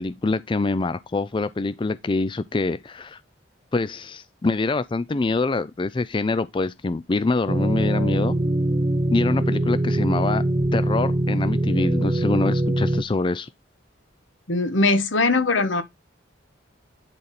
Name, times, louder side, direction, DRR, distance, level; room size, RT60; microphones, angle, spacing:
voice 1, 0.0-3.2 3.7-8.3 9.1-10.4 10.7-13.5, left 3 dB, 25° left, 0.4 m, -25 dB
sound 1, 7.5-13.0, right 1 dB, 30° right, 0.6 m, -22 dB
voice 2, 14.5-15.8, left 3 dB, 80° left, 1.2 m, -20 dB
10.5 x 4.0 x 4.1 m
head